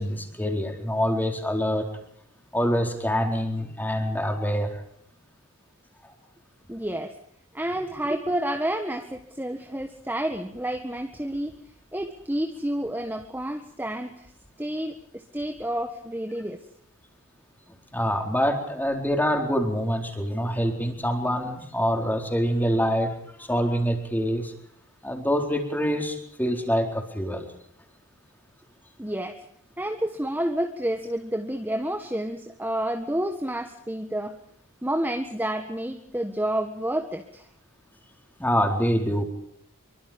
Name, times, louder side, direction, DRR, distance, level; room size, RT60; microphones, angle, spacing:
voice 1, 0.0-1.9 2.5-4.8 17.9-24.5 25.0-27.5 38.4-39.2, equal, 10° left, 3 dB, 4.4 m, -25 dB
voice 2, 6.7-7.1 7.5-11.5 11.9-14.3 14.6-16.6 29.0-29.4 29.8-34.4 34.8-37.5, right 1 dB, 10° right, 5 dB, 1.6 m, -29 dB
26.5 x 24.5 x 5.3 m, 0.69 s
head